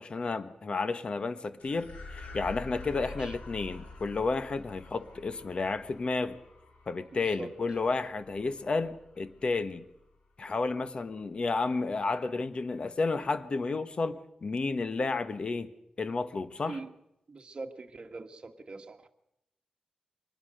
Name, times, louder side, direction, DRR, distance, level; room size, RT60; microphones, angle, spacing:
voice 1, 0.0-6.3 6.9-9.8 10.4-15.7 16.0-16.8, left 3 dB, 50° left, 12 dB, 1.3 m, -31 dB
sound 1, 1.6-10.2, left 3 dB, 85° left, 4.9 m, -47 dB
voice 2, 2.9-3.4 7.1-7.5 16.6-16.9 17.3-19.1, right 3 dB, 45° right, 5 dB, 1.9 m, -43 dB
24.5 x 19.5 x 6.6 m, 0.83 s
wide cardioid pair, 85°, 2 cm